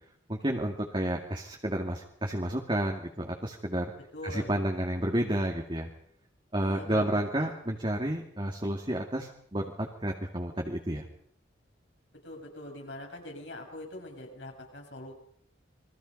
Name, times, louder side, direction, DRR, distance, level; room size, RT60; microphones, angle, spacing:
voice 1, 0.3-3.9 4.2-5.9 6.5-11.0, right 1 dB, 25° right, 1 dB, 2.4 m, -31 dB
voice 2, 4.1-4.5 6.6-7.5 12.2-15.1, left 1 dB, 65° left, 2 dB, 7.9 m, -43 dB
29.0 x 23.0 x 5.5 m, 0.63 s
head